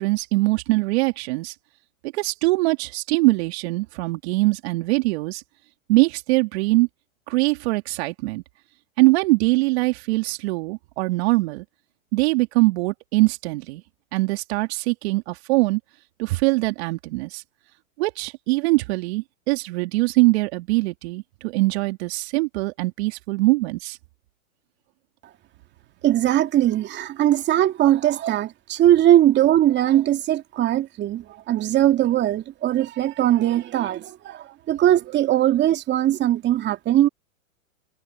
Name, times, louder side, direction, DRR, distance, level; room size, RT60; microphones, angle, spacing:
voice 1, 0.0-1.5 2.1-5.4 5.9-6.9 7.3-8.4 9.0-11.6 12.1-13.8 14.1-15.8 16.2-17.4 18.0-24.0, right 23 dB, 50° right, 3.0 m, -22 dB
voice 2, 26.0-37.1, right 12 dB, 25° right, 2.5 m, -20 dB
hypercardioid pair, 125°, 41 cm